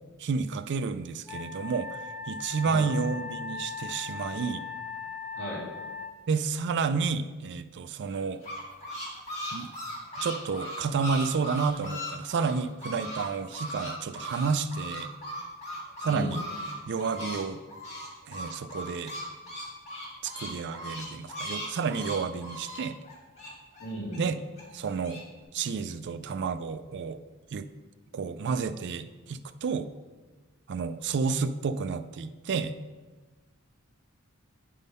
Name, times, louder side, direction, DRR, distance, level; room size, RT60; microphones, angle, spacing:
voice 1, 0.2-2.0 2.3-4.6 6.3-8.4 9.5-9.7 10.2-15.1 16.0-16.4 16.9-17.6 18.3-19.1 20.2-23.0 24.2-24.4 24.7-25.2 25.5-27.2 27.5-27.7 28.1-29.9 30.7-32.7, right 5 dB, 55° right, 11 dB, 0.4 m, -30 dB
Wind instrument woodwind instrument, 1.3-6.2, left 5 dB, 5° right, 0.6 m, -39 dB
sound 1, 8.1-13.2 13.5-17.4 17.7-24.2 24.6-25.2, equal, 30° left, 1.6 m, -38 dB
voice 2, 16.0-16.3 23.8-24.2, right 1 dB, 55° left, -5 dB, 2.4 m, -35 dB
9.2 x 3.7 x 5.3 m, 1.3 s
head